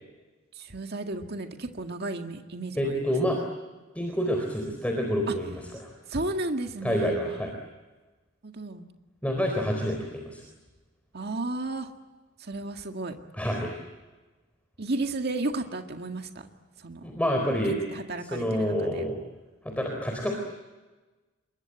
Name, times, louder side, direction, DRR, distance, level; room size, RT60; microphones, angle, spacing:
voice 1, 0.5-3.1 5.3-5.4 6.1-7.6 8.4-8.9 11.1-11.9 12.4-13.2 14.8-16.5 16.8-17.1 17.7-19.1, right 2 dB, 55° right, 4 dB, 1.9 m, -33 dB
voice 2, 2.8-3.4 3.9-5.6 6.8-7.5 9.2-10.4 13.3-13.7 17.0-17.8 18.3-19.2 19.6-20.3, equal, 5° left, 2 dB, 4.1 m, -27 dB
27.5 x 23.0 x 8.9 m, 1.2 s
head